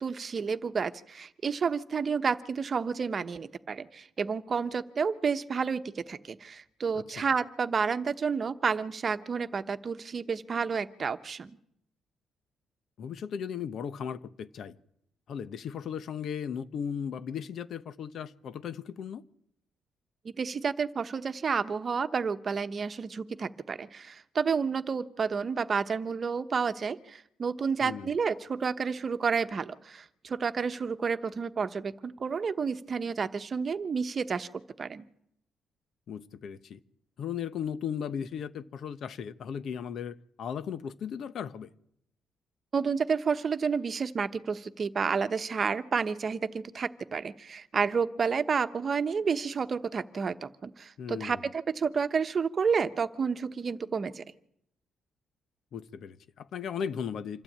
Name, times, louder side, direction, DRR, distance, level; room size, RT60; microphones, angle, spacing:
voice 1, 0.0-11.5 20.4-35.1 42.7-54.2, right 5 dB, 40° right, 1.0 m, -30 dB
voice 2, 6.9-7.3 13.0-14.8 15.3-19.2 27.8-28.1 36.1-36.8 37.2-41.7 51.0-51.4 55.7-57.4, left 7 dB, 65° left, 0.9 m, -36 dB
26.5 x 12.5 x 8.7 m
cardioid pair, 90°, 0 cm